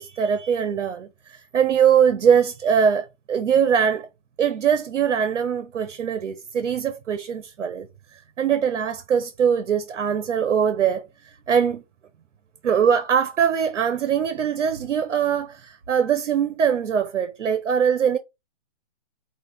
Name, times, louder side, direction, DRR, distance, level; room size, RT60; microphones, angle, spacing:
voice 1, 0.0-4.1 4.4-7.9 8.4-11.0 11.5-11.8 12.6-18.2, right 7 dB, 90° right, 0.8 m, -22 dB
5.0 x 2.5 x 3.4 m
hypercardioid pair, 170°, 36 cm